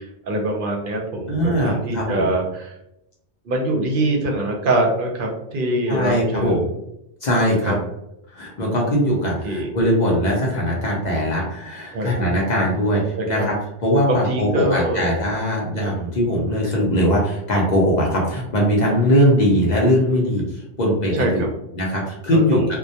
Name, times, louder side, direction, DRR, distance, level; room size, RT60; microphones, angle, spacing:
voice 1, 0.0-2.7 3.4-6.7 7.7-7.8 9.4-9.7 11.9-12.1 13.1-13.5 14.1-15.1 21.1-21.5 22.3-22.4, right 1 dB, 60° right, 0 dB, 0.7 m, -23 dB
voice 2, 1.3-2.3 5.9-6.6 7.2-7.7 8.3-13.5 13.8-21.5 21.7-22.6, equal, 50° left, -3 dB, 0.6 m, -20 dB
2.1 x 2.1 x 2.7 m, 0.84 s
omnidirectional pair, 1.1 m